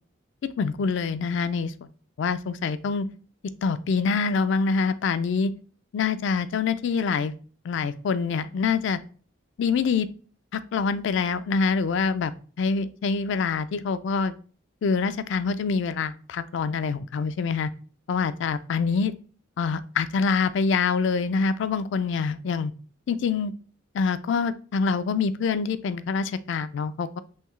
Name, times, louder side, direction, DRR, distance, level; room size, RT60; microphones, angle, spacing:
voice 1, 0.6-1.7 2.2-3.1 3.6-5.5 5.9-7.4 7.6-9.0 9.6-10.1 10.5-12.3 12.6-14.4 14.8-17.7 18.1-19.1 19.6-22.7 23.1-23.5 23.9-27.2, left 5 dB, 60° left, 14 dB, 0.3 m, -25 dB
5.6 x 3.0 x 3.1 m, 0.41 s
head